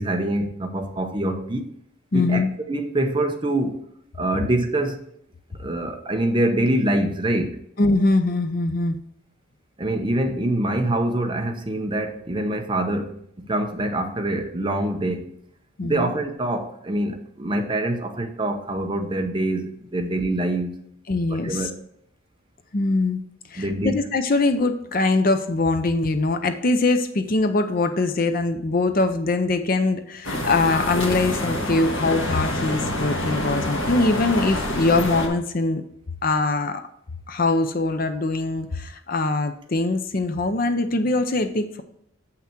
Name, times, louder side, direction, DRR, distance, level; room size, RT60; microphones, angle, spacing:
voice 1, 0.0-1.7 2.1-3.9 4.1-5.0 5.5-7.6 9.8-15.4 15.8-20.8 21.3-21.8 23.6-24.0, right 1 dB, 20° right, 0.7 m, -25 dB
voice 2, 2.1-2.5 7.8-9.0 15.8-16.1 21.1-21.6 22.7-23.2 23.5-35.8 36.2-36.8 37.3-41.8, left 2 dB, 40° left, 0.6 m, -22 dB
sound 1, 30.2-35.3, left 1 dB, 65° left, 1.6 m, -26 dB
7.5 x 5.8 x 4.5 m
head